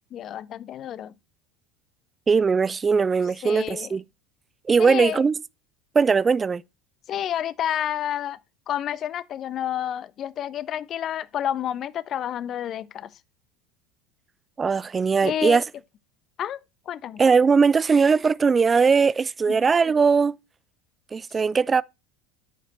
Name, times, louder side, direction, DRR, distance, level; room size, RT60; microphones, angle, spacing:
voice 1, 0.1-1.1 3.4-3.9 4.8-5.2 7.1-8.4 8.7-13.1 15.2-15.6 16.4-16.6 16.9-17.2 19.5-19.6, left 10 dB, 40° left, 0.4 m, -29 dB
voice 2, 2.3-4.0 4.7-5.3 5.9-6.6 14.6-15.6 17.2-20.4 21.1-21.8, right 5 dB, 25° right, 0.3 m, -20 dB
8.8 x 4.9 x 4.2 m
figure-of-eight pair, 75°, 0 cm